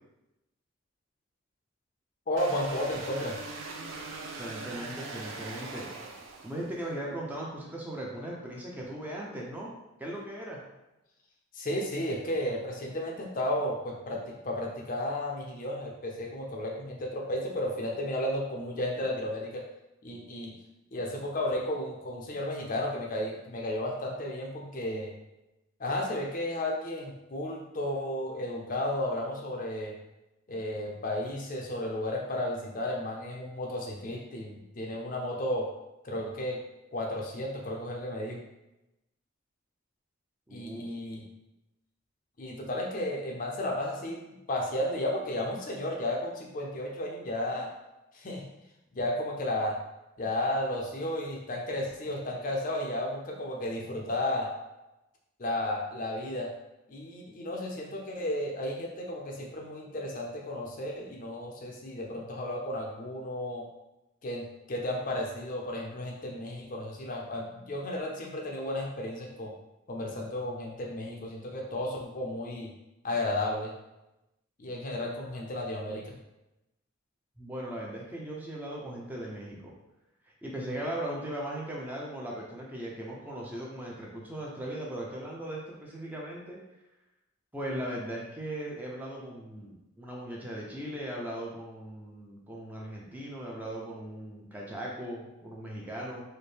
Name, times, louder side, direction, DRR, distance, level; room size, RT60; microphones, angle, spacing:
voice 1, 2.3-3.4 11.5-19.6 20.0-20.5 20.9-25.1 25.8-29.9 30.5-35.7 36.0-36.6 36.9-38.4 40.5-41.2 42.4-47.7 48.1-48.5 48.9-49.8 50.2-54.5 55.4-56.5 56.9-63.7 64.2-69.5 69.9-72.7 73.0-73.7 74.6-76.1, left 1 dB, 45° left, 0 dB, 0.6 m, -33 dB
sound 1, 2.4-6.9, right 3 dB, 80° right, 0.4 m, -41 dB
voice 2, 4.3-5.8 6.4-9.7 10.0-10.6 40.5-40.9 77.4-79.7 80.4-86.6 87.5-96.2, right 1 dB, 10° right, -3 dB, 0.6 m, -38 dB
4.3 x 2.1 x 3.3 m, 0.95 s
head